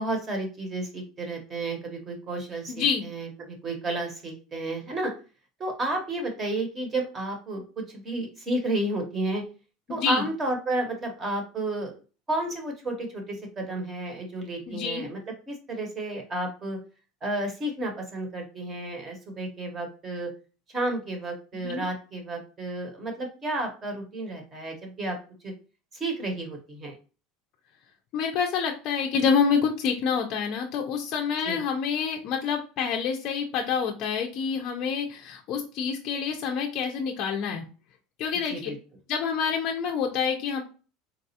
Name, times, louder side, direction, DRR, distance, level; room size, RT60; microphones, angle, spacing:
voice 1, 0.0-5.1 5.6-7.6 7.9-9.4 9.9-12.0 12.3-15.2 15.5-16.8 17.2-20.3 20.7-25.2 25.4-25.5 25.9-27.0 31.4-31.6 38.5-38.8, right 2 dB, 20° right, 3 dB, 0.8 m, -31 dB
voice 2, 2.7-3.0 9.9-10.3 14.7-15.1 21.6-21.8 28.1-37.6 38.2-38.7 39.1-40.6, left 6 dB, 40° left, 0 dB, 0.4 m, -27 dB
4.0 x 2.3 x 2.7 m, 0.35 s
cardioid pair, 170°, 0 cm